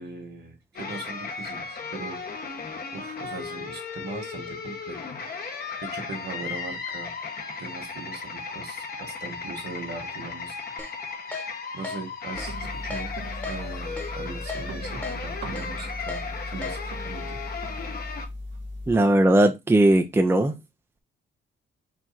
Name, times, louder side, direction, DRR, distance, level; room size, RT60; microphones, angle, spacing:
voice 1, 0.0-2.2 2.9-5.0 5.8-7.1 7.6-10.6 11.7-13.1 13.4-17.4, right 4 dB, 55° right, 1.7 m, -39 dB
sound 1, 0.7-18.2, left 5 dB, 50° left, 1.2 m, -36 dB
Keyboard (musical), 10.8-10.9 11.3-11.5 11.8-12.0 12.4-12.5 12.9-13.0 13.4-13.6 14.0-14.1 14.5-14.6 15.0-15.2 15.6-15.7 16.1-16.2 16.6-16.8, left 3 dB, 10° left, 1.2 m, -35 dB
sound 2, 12.3-19.0, left 1 dB, 75° right, 1.5 m, -37 dB
voice 2, 18.9-20.6, right 1 dB, 10° right, 0.5 m, -19 dB
4.7 x 2.6 x 4.1 m
cardioid pair, 90°, 20 cm